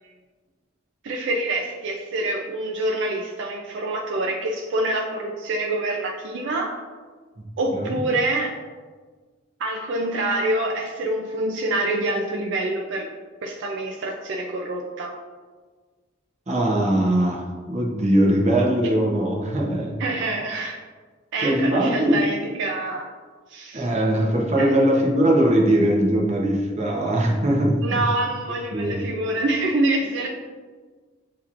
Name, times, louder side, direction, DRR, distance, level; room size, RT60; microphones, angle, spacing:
voice 1, 1.0-6.7 7.6-8.6 9.6-13.1 13.4-15.1 20.0-20.8 21.3-23.1 23.5-23.9 24.6-24.7 27.8-30.3, right 2 dB, 65° right, 0 dB, 0.4 m, -26 dB
voice 2, 7.7-8.0 16.5-20.0 21.4-22.2 23.7-28.1 28.7-29.0, right 1 dB, 35° right, -1 dB, 0.8 m, -21 dB
7.3 x 2.9 x 2.5 m, 1.4 s
head